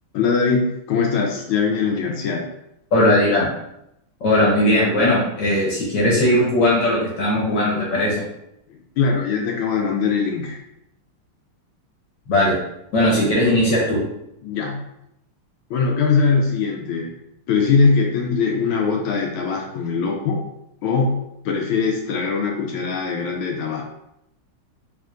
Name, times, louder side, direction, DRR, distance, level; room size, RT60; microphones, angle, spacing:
voice 1, 0.1-2.4 8.7-10.6 13.2-13.3 14.4-14.8 15.7-17.1 17.5-20.4 20.8-23.8, left 5 dB, 80° left, 0 dB, 1.4 m, -21 dB
voice 2, 2.9-3.5 4.2-8.2 12.3-12.6 12.9-14.0, left 1 dB, 60° left, -5 dB, 1.4 m, -18 dB
3.6 x 3.3 x 2.5 m, 0.81 s
omnidirectional pair, 2.4 m